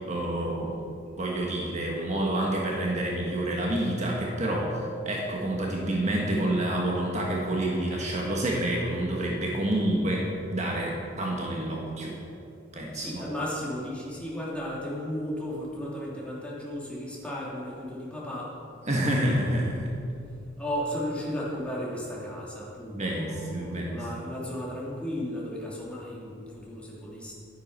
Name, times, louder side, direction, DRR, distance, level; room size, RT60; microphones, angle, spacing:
voice 1, 0.1-0.8 1.2-12.3 12.7-13.2 18.9-19.9 22.9-24.0, right 1 dB, 35° right, -2 dB, 1.4 m, -28 dB
voice 2, 12.9-18.5 20.6-27.3, equal, 5° left, -6 dB, 2.8 m, -34 dB
12.0 x 9.4 x 5.4 m, 2.6 s
head